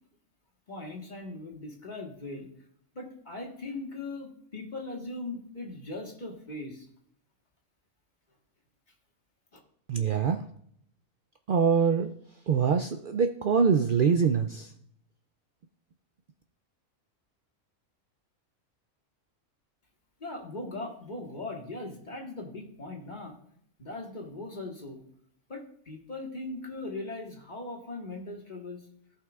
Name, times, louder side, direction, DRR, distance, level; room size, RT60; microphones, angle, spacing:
voice 1, 0.7-2.5 2.9-6.9 9.5-9.6 20.2-23.4 23.8-25.0 25.5-28.8, left 2 dB, 35° left, 0 dB, 1.6 m, -39 dB
voice 2, 9.9-10.4 11.5-12.1 12.5-14.7, right 6 dB, 65° right, 6 dB, 0.5 m, -24 dB
17.0 x 5.7 x 2.4 m, 0.68 s
omnidirectional pair, 1.4 m